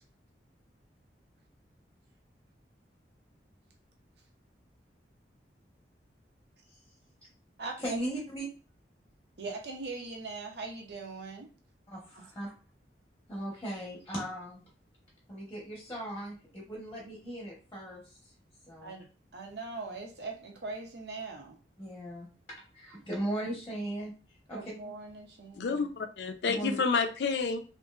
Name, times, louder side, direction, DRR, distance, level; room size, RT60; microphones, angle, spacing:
voice 1, 7.8-8.5 11.9-12.5 13.3-14.6 15.3-18.3 18.6-18.9 21.8-22.3 22.7-24.7 26.5-26.8, right 1 dB, 15° left, 0.9 m, -38 dB
voice 2, 9.4-11.5 18.8-21.6 24.5-25.9, right 3 dB, 65° right, 0.7 m, -41 dB
voice 3, 25.5-27.6, left 4 dB, 70° left, 0.4 m, -29 dB
2.9 x 2.5 x 2.3 m
head